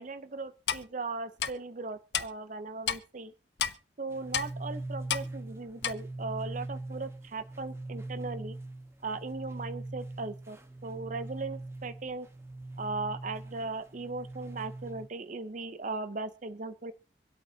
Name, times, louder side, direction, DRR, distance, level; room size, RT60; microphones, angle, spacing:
voice 1, 0.0-3.3 4.0-8.6 9.0-12.3 12.8-16.9, right 3 dB, 45° right, 12 dB, 0.7 m, -38 dB
Clock, 0.7-0.8 1.4-1.5 2.1-2.3 2.9-3.0 3.6-3.7 4.3-4.5 5.1-5.3 5.8-5.9, left 9 dB, 70° left, 0.7 m, -30 dB
sound 1, 4.1-15.1, right 2 dB, 15° right, 1.2 m, -42 dB
25.0 x 8.4 x 2.8 m, 0.34 s
head